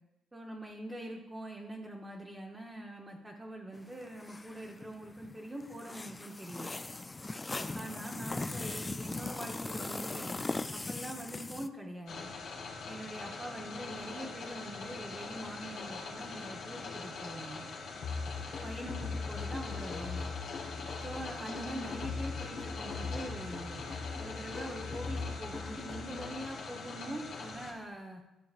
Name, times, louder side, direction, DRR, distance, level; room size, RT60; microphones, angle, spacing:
voice 1, 0.3-6.7 7.7-10.4 10.7-12.3 12.9-17.7 18.6-20.3 21.0-23.8 24.2-28.2, right 1 dB, 20° right, 0 dB, 1.0 m, -43 dB
sound 1, 3.7-11.7, left 2 dB, 20° left, 0.3 m, -39 dB
sound 2, 12.1-27.7, left 4 dB, 75° left, 1.7 m, -43 dB
sound 3, 18.0-26.5, left 4 dB, 55° left, 1.2 m, -40 dB
12.0 x 5.9 x 2.5 m, 0.95 s
cardioid pair, 90°, 0 cm